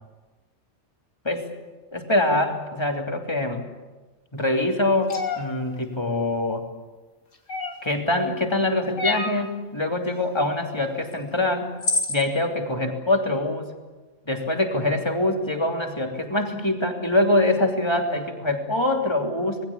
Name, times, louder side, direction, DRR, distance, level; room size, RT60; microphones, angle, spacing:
voice 1, 1.9-3.6 4.3-6.6 7.8-11.7 12.1-13.6 14.3-19.6, left 1 dB, 20° left, 2 dB, 3.1 m, -24 dB
sound 1, 5.1-5.4 7.5-7.9 9.0-9.4 11.1-11.2 11.8-12.2, left 3 dB, 85° left, 3.2 m, -26 dB
27.0 x 20.5 x 8.7 m, 1.3 s
omnidirectional pair, 1.3 m